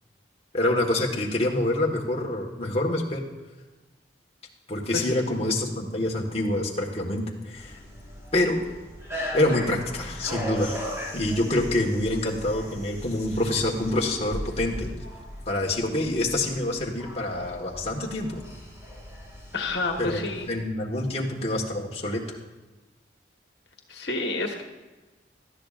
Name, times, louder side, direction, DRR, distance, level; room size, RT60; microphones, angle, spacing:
voice 1, 0.5-3.3 4.7-7.8 8.3-8.6 9.3-10.8 11.1-14.9 15.5-18.4 20.0-20.2 20.5-22.4, left 1 dB, 35° left, -1 dB, 1.5 m, -26 dB
sound 1, 7.5-20.6, equal, 15° right, 4.4 m, -38 dB
voice 2, 19.5-20.5 23.9-24.6, left 2 dB, 65° left, 3 dB, 1.5 m, -29 dB
18.5 x 13.0 x 2.5 m, 1.2 s
head